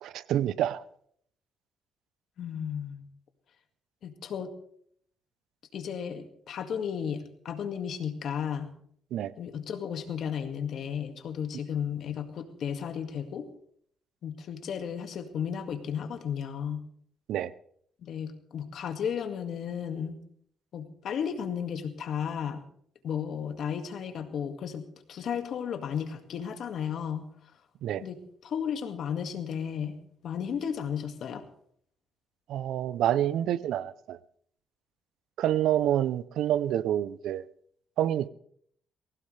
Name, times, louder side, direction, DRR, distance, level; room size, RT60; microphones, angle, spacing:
voice 1, 0.0-0.8 9.1-9.3 17.3-17.5 27.8-28.0 32.5-34.2 35.4-37.5 38.0-38.3, right 11 dB, 80° right, 0.6 m, -27 dB
voice 2, 2.4-3.1 4.0-4.5 5.7-8.7 9.4-13.5 14.2-16.8 18.0-20.2 20.7-22.6 23.0-27.2 28.0-29.9 30.2-31.4, left 8 dB, 65° left, 2.0 m, -34 dB
20.0 x 17.0 x 3.3 m
cardioid pair, 90°, 0 cm